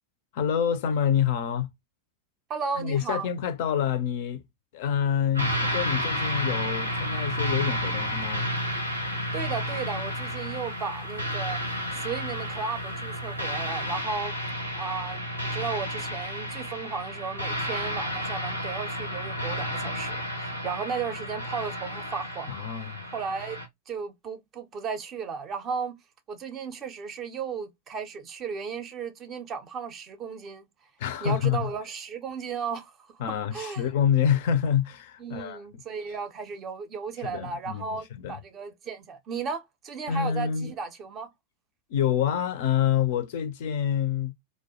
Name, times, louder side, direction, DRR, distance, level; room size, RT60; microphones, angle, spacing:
voice 1, 0.3-1.7 2.8-4.4 4.7-8.5 22.5-23.0 31.0-31.7 33.2-35.6 37.2-37.9 38.2-38.4 40.1-40.7 41.9-44.3, left 9 dB, 50° left, 0.3 m, -27 dB
voice 2, 2.5-3.3 9.3-14.4 14.7-22.6 23.1-23.6 23.9-26.0 26.3-30.6 31.2-33.2 33.5-33.9 35.2-41.3, right 5 dB, 30° right, 0.5 m, -35 dB
sound 1, 5.3-23.7, equal, 90° right, 0.6 m, -31 dB
2.2 x 2.1 x 2.7 m
figure-of-eight pair, 90°, 0 cm